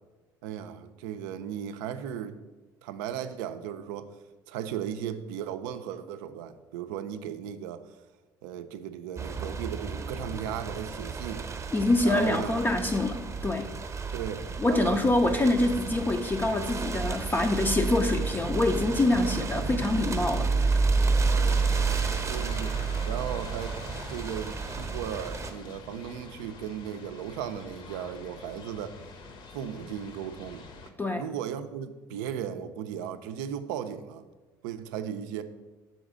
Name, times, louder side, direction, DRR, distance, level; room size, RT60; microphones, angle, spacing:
voice 1, 0.4-2.4 2.8-4.1 4.5-8.0 8.4-11.5 12.0-12.7 14.1-15.5 19.1-19.6 21.3-21.6 22.3-23.8 24.1-29.0 29.5-30.6 31.2-34.2 34.6-35.4, right 9 dB, 70° right, 10 dB, 0.4 m, -36 dB
sound 1, 9.2-25.5, right 4 dB, 25° right, 0.8 m, -30 dB
voice 2, 11.7-13.7 14.6-20.9 31.0-31.2, left 2 dB, 20° left, 3 dB, 0.4 m, -26 dB
sound 2, 21.5-30.9, left 4 dB, 50° left, 0.8 m, -45 dB
6.3 x 3.9 x 4.9 m, 1.2 s
hypercardioid pair, 60°, 11 cm